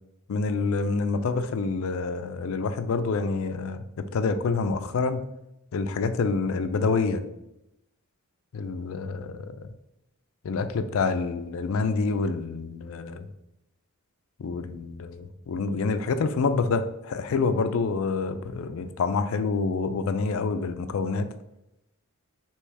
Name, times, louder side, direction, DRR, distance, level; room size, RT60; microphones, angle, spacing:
voice 1, 0.3-5.3 5.7-7.2 8.5-9.7 10.4-13.3 14.4-21.3, left 4 dB, 65° left, 10 dB, 0.4 m, -27 dB
3.3 x 3.0 x 4.7 m, 0.86 s
head